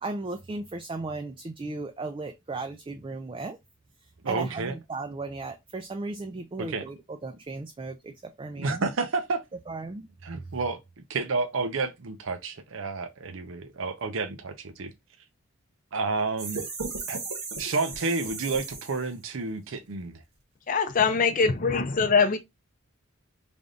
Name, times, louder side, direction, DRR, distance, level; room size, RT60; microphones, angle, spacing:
voice 1, 0.0-3.6 4.3-7.0 7.2-8.1 8.4-8.8 9.7-10.1, right 3 dB, 25° right, 0.3 m, -36 dB
voice 2, 4.2-4.7 6.6-6.9 8.6-9.4 10.2-10.8 11.1-14.9 15.9-16.7 17.1-17.2 17.6-20.2, right 3 dB, 65° right, 0.6 m, -30 dB
sound 1, 16.4-19.2, right 4 dB, 80° right, 1.5 m, -36 dB
voice 3, 20.7-22.4, left 5 dB, 40° left, 0.5 m, -22 dB
3.4 x 2.6 x 3.8 m
head